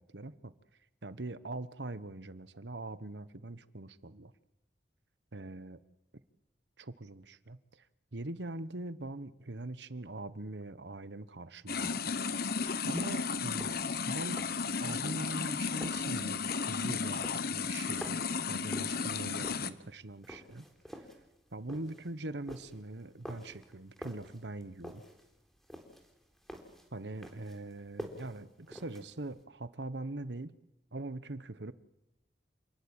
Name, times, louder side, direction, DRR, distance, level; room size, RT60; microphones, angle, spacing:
voice 1, 0.1-0.5 1.0-4.3 5.3-5.8 6.8-7.8 8.1-12.1 12.5-13.8 14.0-14.4 14.8-20.7 20.9-21.0 21.5-25.0 26.9-30.5 30.9-31.7, right 2 dB, 80° right, 14 dB, 1.3 m, -42 dB
sound 1, 11.7-19.7, left 5 dB, 60° left, 1.2 m, -34 dB
sound 2, 12.8-29.4, equal, ahead, 3.8 m, -49 dB
28.5 x 20.0 x 9.0 m, 0.94 s
head